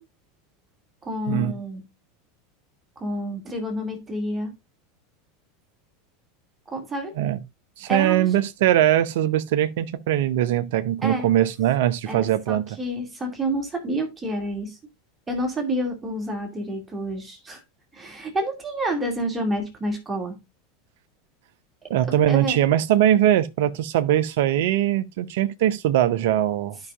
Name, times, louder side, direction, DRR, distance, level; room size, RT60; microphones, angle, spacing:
voice 1, 1.0-1.8 3.0-4.5 6.7-7.1 7.9-8.3 11.0-11.3 12.1-14.8 15.3-17.6 17.9-20.4 22.3-22.6, right 1 dB, 15° right, 2.3 m, -29 dB
voice 2, 7.8-12.6 21.9-26.8, right 12 dB, 60° right, 0.6 m, -21 dB
12.0 x 5.6 x 2.5 m
figure-of-eight pair, 80°, 0 cm